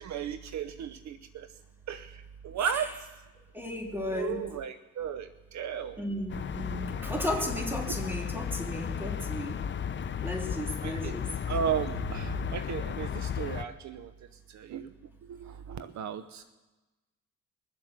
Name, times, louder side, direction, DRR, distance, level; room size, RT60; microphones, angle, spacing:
voice 1, 0.0-1.5 1.9-2.9 4.1-6.0 7.9-8.0 10.8-11.1 11.5-14.1 14.5-14.9 15.3-16.5, right 8 dB, 65° right, 11 dB, 0.8 m, -35 dB
voice 2, 2.6-2.9 3.5-4.5 6.0-9.7 10.2-11.3, left 1 dB, 5° right, 1 dB, 3.1 m, -35 dB
sound 1, 6.3-13.6, left 8 dB, 40° left, 0.7 m, -34 dB
22.5 x 7.8 x 7.4 m, 1.1 s
cardioid pair, 90°, 30 cm